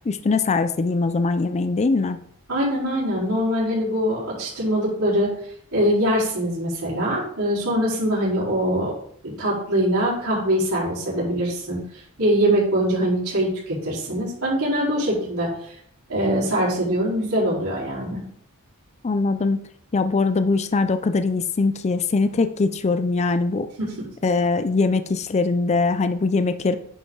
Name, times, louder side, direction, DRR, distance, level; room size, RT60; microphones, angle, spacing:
voice 1, 0.1-2.2 19.0-19.6 19.9-23.7 24.2-26.8, left 3 dB, 30° left, 11 dB, 0.4 m, -22 dB
voice 2, 2.5-5.3 5.7-8.9 9.2-11.8 12.2-15.5 16.1-18.2, equal, 75° right, -10 dB, 4.3 m, -23 dB
10.0 x 6.0 x 3.9 m, 0.65 s
head